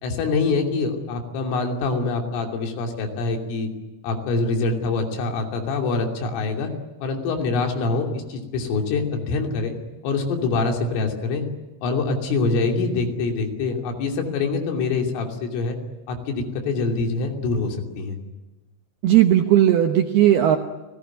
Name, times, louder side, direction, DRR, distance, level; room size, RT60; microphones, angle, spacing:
voice 1, 0.0-3.7 4.0-6.7 7.0-9.8 10.0-11.5 11.8-15.8 16.1-18.2, left 3 dB, 75° left, 2 dB, 5.4 m, -25 dB
voice 2, 19.0-20.6, right 12 dB, 75° right, 5 dB, 2.4 m, -16 dB
29.5 x 18.5 x 9.4 m, 1.1 s
omnidirectional pair, 6.0 m